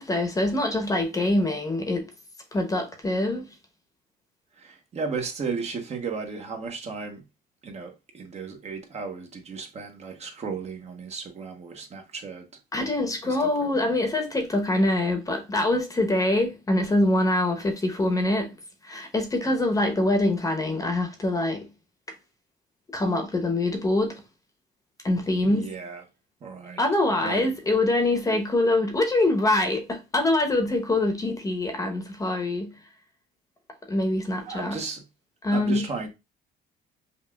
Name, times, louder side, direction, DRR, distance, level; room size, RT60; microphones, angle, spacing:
voice 1, 0.0-2.1 2.5-3.4 12.7-18.5 18.8-21.7 22.9-24.2 25.0-25.7 26.8-32.7 33.9-34.8 35.4-35.9, left 2 dB, 20° left, 0.8 m, -24 dB
voice 2, 4.5-7.2 7.6-12.5 13.2-13.9 25.4-26.0 26.4-26.8 27.2-27.5 34.4-35.0 35.5-36.1, right 5 dB, 40° right, 0.9 m, -35 dB
5.4 x 2.4 x 2.2 m
cardioid pair, 110°, 17 cm